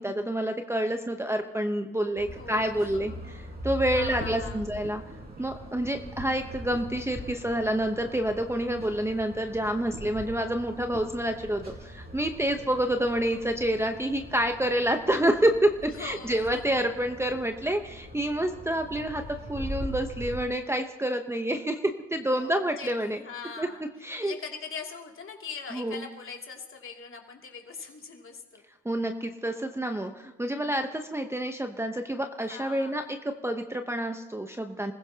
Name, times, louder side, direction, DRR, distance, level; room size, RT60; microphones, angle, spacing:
voice 1, 0.0-3.1 3.6-5.0 5.4-19.2 19.5-23.2 23.6-23.7 24.0-24.3 25.7-26.0 28.8-33.0 33.4-34.9, right 1 dB, 10° right, 5 dB, 0.9 m, -28 dB
sound 1, 2.2-20.4, right 1 dB, 30° right, 4.3 m, -41 dB
voice 2, 2.4-3.2 3.9-4.7 15.9-16.8 22.3-23.8 24.2-28.6 32.4-33.1, left 5 dB, 45° left, 1 dB, 2.7 m, -42 dB
28.0 x 15.5 x 2.9 m, 1.1 s
cardioid pair, 90°, 30 cm